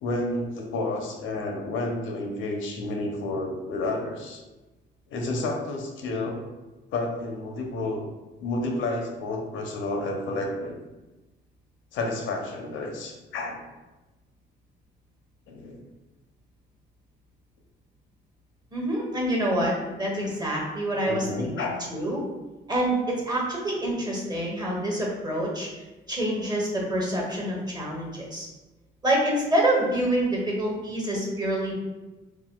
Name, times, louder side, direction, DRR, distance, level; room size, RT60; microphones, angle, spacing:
voice 1, 0.0-4.4 5.1-6.5 6.9-8.1 8.4-10.8 11.9-13.6 15.5-15.8 21.0-21.8, left 2 dB, 80° left, 1 dB, 0.7 m, -30 dB
voice 2, 18.7-19.7 20.0-22.2 22.7-25.7 26.1-28.5 29.0-31.7, right 1 dB, 20° right, -2 dB, 1.1 m, -26 dB
4.1 x 2.3 x 2.3 m, 1.1 s
cardioid pair, 90°, 20 cm